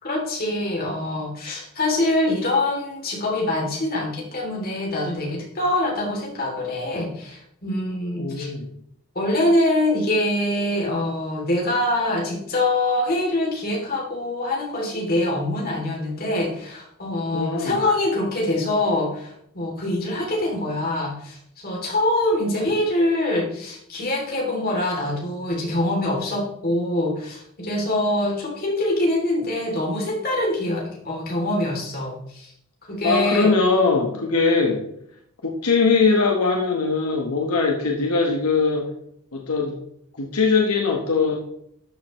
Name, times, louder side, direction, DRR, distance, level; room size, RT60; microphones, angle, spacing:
voice 1, 0.0-8.5 9.1-32.5 32.9-33.6, left 1 dB, 45° left, -2 dB, 3.2 m, -24 dB
voice 2, 8.2-8.7 17.3-17.8 33.0-34.8 35.4-38.9 39.3-39.8 40.2-41.4, left 4 dB, 80° left, 0 dB, 1.4 m, -21 dB
12.0 x 7.0 x 3.2 m, 0.70 s
head